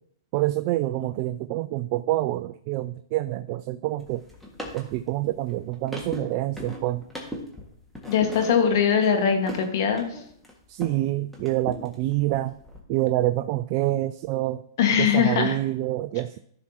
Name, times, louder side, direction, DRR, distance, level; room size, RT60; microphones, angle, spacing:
voice 1, 0.3-4.2 4.7-7.0 10.7-12.6 12.9-14.6 15.0-16.4, right 16 dB, 40° right, 12 dB, 0.3 m, -27 dB
sound 1, 4.0-11.0 11.3-12.8, left 1 dB, ahead, 1.8 m, -39 dB
voice 2, 8.1-10.0 14.8-15.5, left 7 dB, 55° left, 5 dB, 1.6 m, -21 dB
14.5 x 6.0 x 2.9 m, 0.65 s
hypercardioid pair, 125°, 2 cm